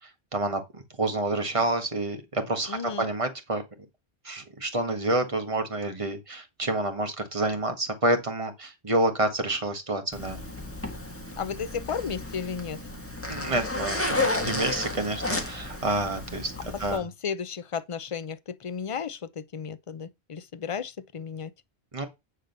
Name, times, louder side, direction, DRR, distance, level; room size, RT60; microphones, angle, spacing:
voice 1, 0.3-3.6 4.2-10.4 13.3-16.5 16.8-17.0 21.9-22.1, right 2 dB, 30° right, 1.6 m, -28 dB
voice 2, 2.7-3.1 11.4-12.8 16.9-21.5, left 6 dB, 35° left, 0.6 m, -33 dB
Zipper (clothing), 10.1-17.0, left 2 dB, 10° left, 1.6 m, -32 dB
9.8 x 3.8 x 6.7 m
omnidirectional pair, 1.1 m